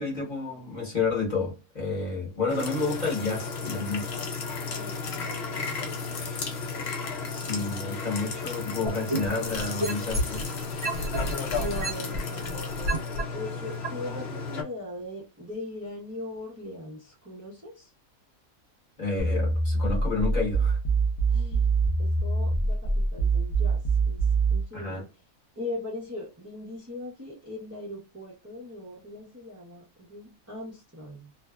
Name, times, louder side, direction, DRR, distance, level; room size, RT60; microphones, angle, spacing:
voice 1, 0.0-4.1 7.3-10.4 19.0-20.8 24.7-25.0, left 3 dB, 35° left, 1.0 m, -30 dB
sound 1, 2.5-14.6, left 4 dB, 60° left, 0.7 m, -34 dB
voice 2, 4.7-6.5 11.5-17.9 21.3-21.7 22.0-25.1 25.6-31.3, left 2 dB, 20° right, 0.5 m, -40 dB
sound 2, 8.9-10.4 10.8-13.2 13.8-13.9, right 1 dB, 55° right, 0.9 m, -29 dB
sound 3, 19.2-24.7, right 3 dB, 90° left, 0.3 m, -24 dB
2.6 x 2.2 x 2.2 m
omnidirectional pair, 1.5 m